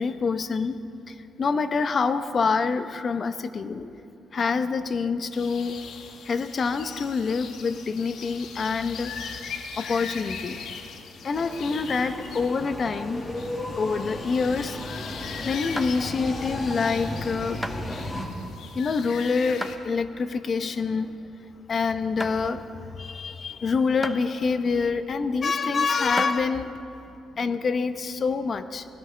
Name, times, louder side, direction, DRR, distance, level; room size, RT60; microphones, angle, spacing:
voice 1, 0.0-4.0 4.3-5.8 6.2-9.2 9.8-10.6 11.2-13.2 13.8-17.7 18.7-21.2 21.7-26.8 27.3-28.9, left 4 dB, 45° left, 10 dB, 0.8 m, -26 dB
sound 1, 5.3-19.8, left 6 dB, 70° left, 1.1 m, -40 dB
sound 2, 11.3-18.3, left 1 dB, 25° left, 1.9 m, -35 dB
sound 3, 15.8-16.3 16.9-17.1 17.6-17.9 18.5-19.0 19.6-19.8 20.3-20.4 21.1-21.2 21.7-21.8 22.2-22.4 23.1-23.2 24.0-24.2 25.0-25.1 25.9-26.4, equal, ahead, 0.7 m, -35 dB
20.0 x 18.0 x 3.4 m, 2.8 s
cardioid pair, 90°, 0 cm